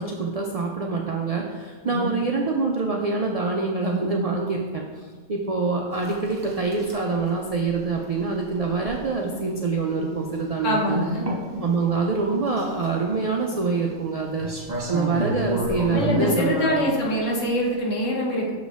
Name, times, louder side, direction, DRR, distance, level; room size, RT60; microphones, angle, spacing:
voice 1, 0.0-11.1 11.6-16.9, right 4 dB, 65° right, 0 dB, 0.3 m, -25 dB
sound 1, 5.9-17.8, equal, 35° right, 1.1 m, -33 dB
voice 2, 10.6-11.3 15.4-15.5 15.9-18.5, equal, 75° left, -2 dB, 1.5 m, -24 dB
6.5 x 4.3 x 3.5 m, 1.5 s
omnidirectional pair, 1.3 m